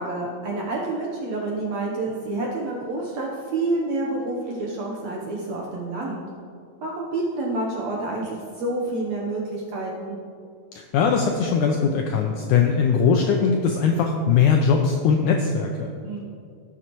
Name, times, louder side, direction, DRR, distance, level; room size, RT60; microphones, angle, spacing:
voice 1, 0.0-6.2 6.8-10.2 16.0-16.2, right 2 dB, 70° right, -2 dB, 1.7 m, -28 dB
voice 2, 10.7-15.9, left 6 dB, 85° left, 2 dB, 1.8 m, -20 dB
17.5 x 7.1 x 3.0 m, 2.3 s
omnidirectional pair, 4.2 m